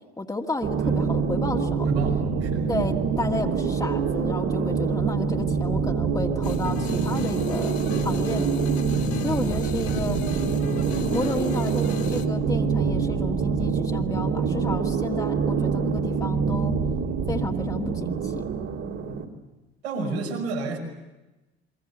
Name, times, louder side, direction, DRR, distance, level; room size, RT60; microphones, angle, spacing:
voice 1, 0.0-1.9 2.7-7.7 8.0-8.7 9.2-10.2 10.9-16.7 17.3-18.4 20.0-20.2, left 2 dB, 10° left, 1 dB, 2.0 m, -32 dB
sound 1, 0.6-19.2, right 5 dB, 55° right, 2.9 m, -25 dB
voice 2, 1.8-2.7 19.1-19.2 19.8-20.8, right 4 dB, 80° right, 0 dB, 5.8 m, -32 dB
sound 2, 6.4-12.3, left 8 dB, 60° left, 1.8 m, -35 dB
29.5 x 22.5 x 6.9 m, 1.0 s
hypercardioid pair, 65°, 32 cm